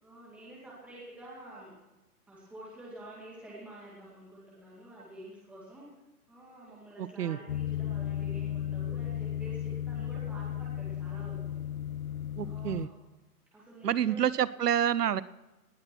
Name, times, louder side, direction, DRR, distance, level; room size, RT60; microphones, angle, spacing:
voice 1, 0.0-1.7 2.3-5.9 6.3-11.6 12.4-12.9 13.5-14.4, right 1 dB, 5° right, -7 dB, 2.3 m, -49 dB
voice 2, 7.0-7.4 12.4-12.9 13.8-15.2, right 10 dB, 80° right, 19 dB, 0.9 m, -28 dB
sound 1, 7.5-12.9, left 10 dB, 65° left, 0.9 m, -35 dB
18.5 x 10.0 x 6.1 m, 1.1 s
hypercardioid pair, 165°, 46 cm